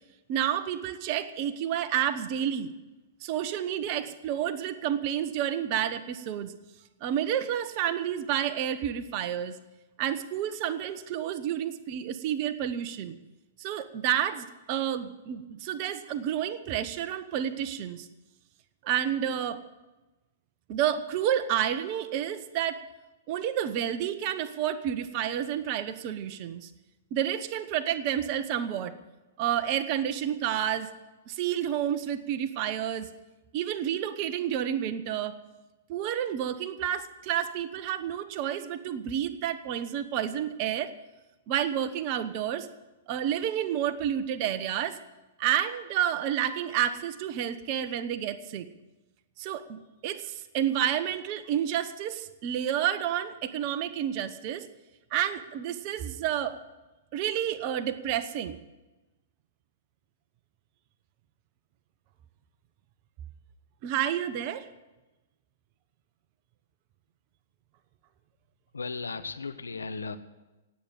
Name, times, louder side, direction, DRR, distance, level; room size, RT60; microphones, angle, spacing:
voice 1, 0.3-2.7 3.2-6.5 7.0-9.6 10.0-13.1 13.6-18.1 18.8-19.6 20.7-22.8 23.3-26.7 27.1-29.0 29.4-30.9 31.3-33.1 33.5-35.4 35.9-40.9 41.5-42.7 43.1-45.0 45.4-48.7 49.4-54.7 55.1-56.6 57.1-58.6 63.8-64.7, right 10 dB, 40° right, 12 dB, 1.1 m, -30 dB
voice 2, 68.7-70.2, left 4 dB, 75° left, 9 dB, 1.1 m, -36 dB
17.5 x 8.5 x 7.6 m, 1.1 s
figure-of-eight pair, 110°, 0 cm